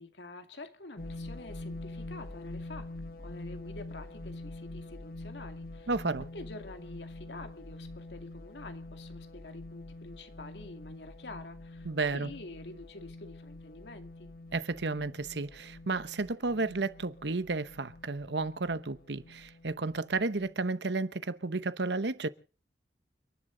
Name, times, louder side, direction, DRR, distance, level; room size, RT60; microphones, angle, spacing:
voice 1, 0.0-5.9 6.3-14.3, left 2 dB, 80° left, 2.3 m, -47 dB
sound 1, 1.0-20.5, left 2 dB, 55° left, 1.4 m, -45 dB
voice 2, 5.9-6.3 11.8-12.3 14.5-22.3, right 3 dB, 75° right, 1.0 m, -32 dB
29.5 x 11.0 x 3.9 m
head